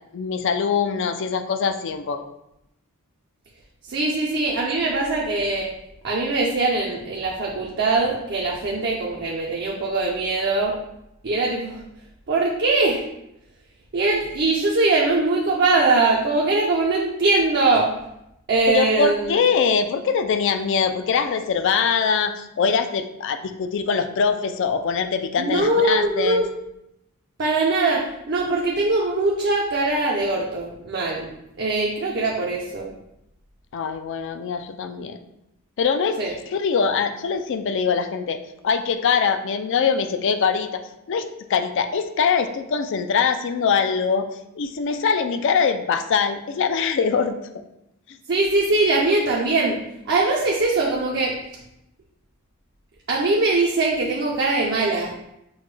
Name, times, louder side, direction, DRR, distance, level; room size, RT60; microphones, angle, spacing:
voice 1, 0.1-2.3 18.7-26.4 33.7-35.2 35.8-36.2 36.5-38.4 38.6-44.3 44.6-47.4, left 6 dB, 55° left, 9 dB, 0.3 m, -23 dB
voice 2, 3.8-5.7 6.0-10.8 11.2-11.8 12.3-13.1 13.9-17.9 18.5-19.4 25.4-26.5 27.4-31.3 31.6-32.9 36.2-36.3 48.3-49.8 50.1-51.4 53.1-55.1, right 2 dB, 50° right, -2 dB, 0.5 m, -21 dB
6.2 x 2.2 x 3.2 m, 0.84 s
head